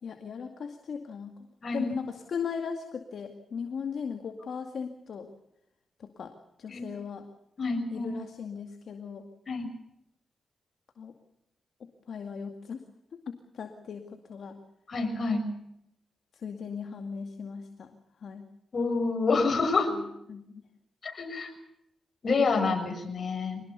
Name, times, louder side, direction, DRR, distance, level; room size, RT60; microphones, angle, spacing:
voice 1, 0.0-1.3 1.7-5.3 6.0-7.3 7.9-9.3 11.0-11.1 11.8-12.8 13.1-14.6 16.4-17.9 18.2-18.4 19.9-20.0 20.3-20.6, left 6 dB, 70° left, 5 dB, 2.2 m, -38 dB
voice 2, 7.6-8.1 9.5-9.7 14.9-15.4 18.7-19.9 21.0-21.5 22.2-23.6, left 4 dB, 50° left, 6 dB, 6.6 m, -27 dB
25.5 x 19.0 x 7.0 m, 0.81 s
cardioid pair, 70°, 0 cm